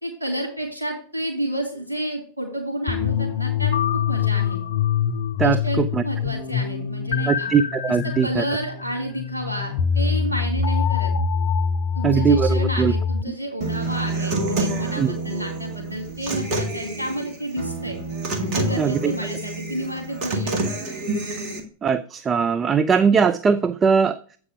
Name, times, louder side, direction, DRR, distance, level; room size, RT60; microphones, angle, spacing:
voice 1, 0.0-4.6 5.4-7.5 7.9-11.1 11.9-18.0 18.5-20.8, right 1 dB, 85° right, 3.2 m, -30 dB
sound 1, 2.9-13.2, left 6 dB, 55° left, 0.6 m, -24 dB
voice 2, 5.4-6.0 7.3-8.4 12.0-12.9 15.0-15.1 18.8-19.1 21.8-24.2, right 6 dB, 20° right, 0.4 m, -20 dB
Human voice / Acoustic guitar, 13.6-21.6, right 2 dB, 40° right, 1.8 m, -28 dB
8.5 x 4.7 x 4.9 m
figure-of-eight pair, 90°, 0 cm